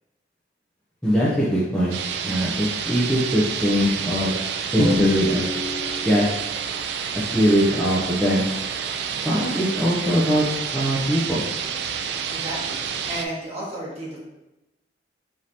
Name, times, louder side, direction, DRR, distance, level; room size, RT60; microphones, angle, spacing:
voice 1, 1.0-2.0 2.2-4.4 4.7-5.5 6.0-6.3 7.1-8.4 9.2-10.4 10.7-11.4, equal, 5° left, -7 dB, 0.6 m, -21 dB
sound 1, 1.9-13.3, right 7 dB, 65° right, 0.3 m, -29 dB
Drum, 4.8-6.5, left 1 dB, 65° left, 1.0 m, -25 dB
voice 2, 12.3-14.2, right 1 dB, 35° right, -6 dB, 1.4 m, -33 dB
5.0 x 2.9 x 2.8 m, 0.98 s
head